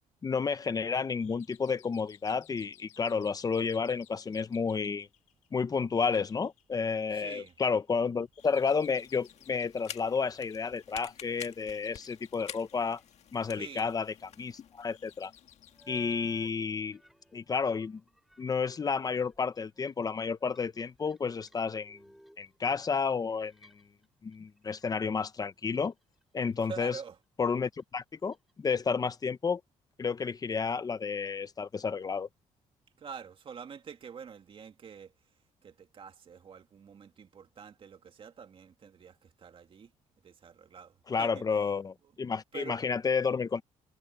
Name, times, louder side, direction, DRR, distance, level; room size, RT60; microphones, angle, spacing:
voice 1, 0.2-5.1 5.5-13.0 13.3-15.3 15.9-17.0 17.3-18.0 18.4-22.0 22.4-23.7 24.2-25.9 26.3-27.0 27.4-29.6 30.0-32.3 41.1-43.6, left 5 dB, 30° left, 0.9 m, -31 dB
sound 1, 1.2-17.3, left 11 dB, 80° left, 3.5 m, -62 dB
voice 2, 7.1-7.5 13.5-13.9 26.6-27.2 33.0-35.1 35.6-39.9 40.2-41.4 42.5-42.8, right 7 dB, 45° right, 2.4 m, -46 dB
sound 2, 8.4-16.5, left 9 dB, 60° left, 1.8 m, -50 dB
sound 3, 13.0-13.1 15.7-16.5 16.8-24.1 24.3-24.9 25.2-26.2 26.6-26.9 27.4-29.1, equal, ahead, 6.4 m, -59 dB
cardioid pair, 115°, 13 cm